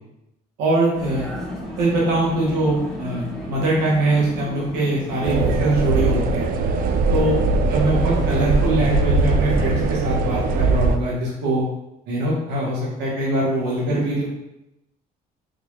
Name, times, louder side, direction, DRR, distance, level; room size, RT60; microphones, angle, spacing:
voice 1, 0.6-1.3 1.8-6.5 7.1-7.4 7.7-11.6 12.1-14.3, right 1 dB, 85° right, -5 dB, 1.1 m, -22 dB
Vehicle, 0.9-10.2, equal, 5° left, 1.0 m, -34 dB
sound 1, 5.2-11.0, right 3 dB, 55° right, 0.4 m, -20 dB
3.8 x 2.4 x 3.1 m, 0.89 s
cardioid pair, 110°, 17 cm